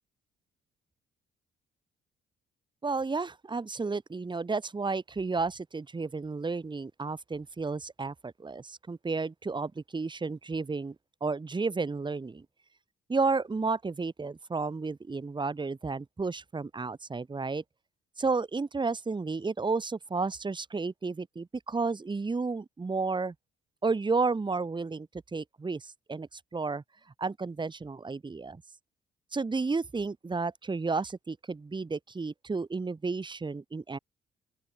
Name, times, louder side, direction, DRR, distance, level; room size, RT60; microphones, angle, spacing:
voice 1, 2.8-11.0 11.2-12.5 13.1-17.6 18.2-23.3 23.8-26.8 27.2-28.6 29.3-34.0, right 4 dB, 25° right, 1.8 m, -32 dB
open air
cardioid pair, 90°, 20 cm